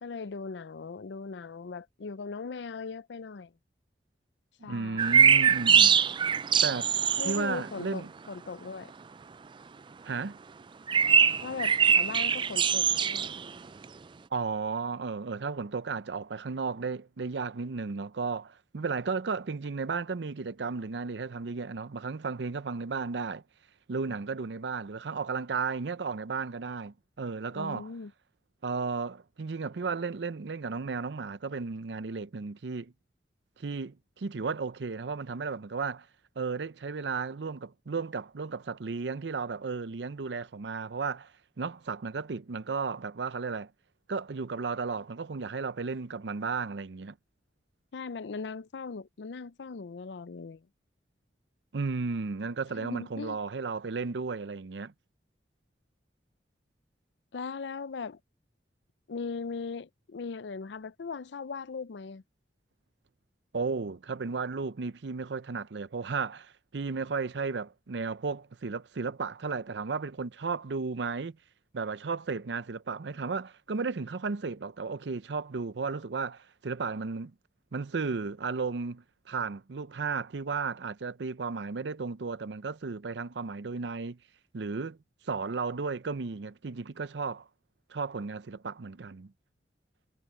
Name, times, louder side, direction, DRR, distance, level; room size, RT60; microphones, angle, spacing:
voice 1, 0.0-3.5 4.6-5.1 7.2-8.9 11.4-13.3 27.5-28.1 47.9-50.7 52.8-53.4 57.3-58.2 59.1-62.2, left 4 dB, 75° left, 0.5 m, -39 dB
voice 2, 4.6-6.0 6.6-6.9 7.2-8.1 10.0-10.4 14.3-23.4 23.9-27.9 28.6-32.9 33.6-36.1 36.4-41.3 41.6-43.7 44.1-47.2 51.7-54.9 63.5-71.4 71.7-77.3 77.7-84.2 84.5-85.0 85.2-87.5 87.9-89.3, right 4 dB, 75° right, 0.6 m, -34 dB
sound 1, 5.0-7.7 10.9-13.5 13.8-13.9, right 7 dB, 30° right, 0.4 m, -22 dB
head